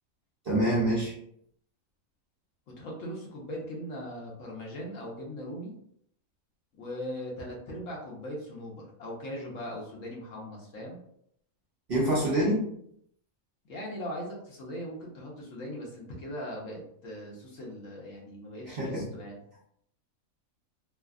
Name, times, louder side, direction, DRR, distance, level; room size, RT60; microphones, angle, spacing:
voice 1, 0.4-1.2 11.9-12.6 18.7-19.0, right 1 dB, 55° right, -5 dB, 0.7 m, -26 dB
voice 2, 2.7-5.7 6.8-11.0 13.6-19.4, equal, 65° left, -2 dB, 1.1 m, -39 dB
3.3 x 2.0 x 2.3 m, 0.70 s
omnidirectional pair, 1.5 m